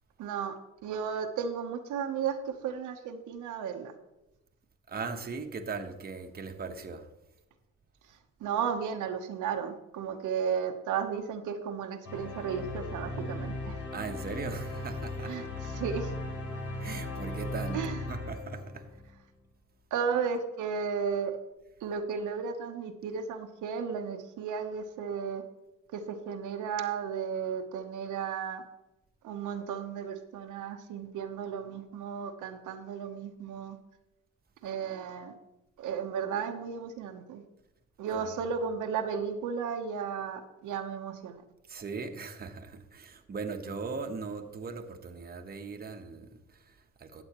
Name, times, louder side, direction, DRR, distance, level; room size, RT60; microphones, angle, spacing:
voice 1, 0.2-0.6 0.8-4.0 8.4-13.8 15.3-15.5 15.7-16.1 17.7-18.0 19.9-21.4 21.8-25.4 25.9-28.6 29.2-33.8 34.6-35.3 35.8-37.4 38.0-41.4, right 7 dB, 85° right, 0.9 m, -34 dB
voice 2, 4.9-7.1 13.9-15.5 16.8-18.9 38.1-38.3 41.7-47.2, right 4 dB, 30° right, 1.1 m, -39 dB
sound 1, 12.0-19.1, left 2 dB, 70° left, 3.3 m, -37 dB
13.0 x 7.8 x 3.0 m
cardioid pair, 90°, 30 cm